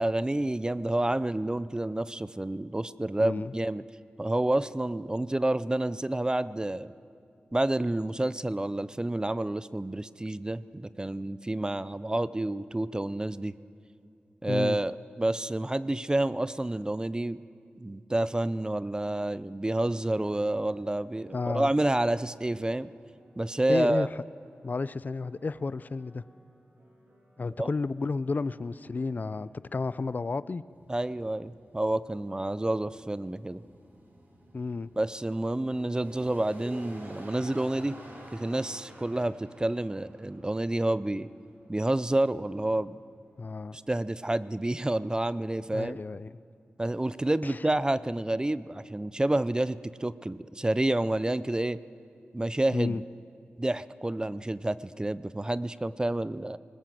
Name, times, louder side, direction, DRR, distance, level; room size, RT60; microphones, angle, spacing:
voice 1, 0.0-3.8 4.2-6.9 7.5-13.5 14.4-17.4 17.8-22.9 23.4-24.1 27.6-27.7 30.9-33.6 35.0-38.0 38.3-41.3 41.7-43.0 43.7-46.0 46.8-51.8 52.3-53.0 53.6-56.6, right 1 dB, 20° right, 16 dB, 0.6 m, -29 dB
voice 2, 3.2-3.5 14.5-14.8 21.3-21.7 23.7-24.1 24.6-26.2 27.4-30.6 34.5-34.9 43.4-43.8 45.7-46.3 47.4-47.6 52.7-53.0, left 4 dB, 50° left, 17 dB, 0.5 m, -32 dB
sound 1, 19.8-30.4, right 1 dB, 90° right, 7.4 m, -62 dB
sound 2, 30.7-45.1, equal, 65° right, 8.0 m, -50 dB
20.5 x 19.5 x 7.6 m, 2.5 s
cardioid pair, 45°, 4 cm